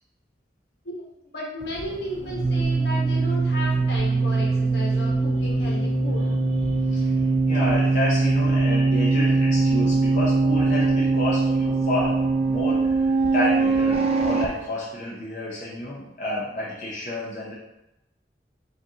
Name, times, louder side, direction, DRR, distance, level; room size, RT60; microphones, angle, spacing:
voice 1, 1.3-6.3, left 1 dB, 70° left, -3 dB, 1.1 m, -34 dB
sound 1, 1.6-14.5, right 3 dB, 35° right, 0.3 m, -22 dB
voice 2, 6.7-12.1 12.5-13.0 13.3-17.5, left 1 dB, 45° left, -6 dB, 0.6 m, -30 dB
4.8 x 2.6 x 2.9 m, 0.90 s
head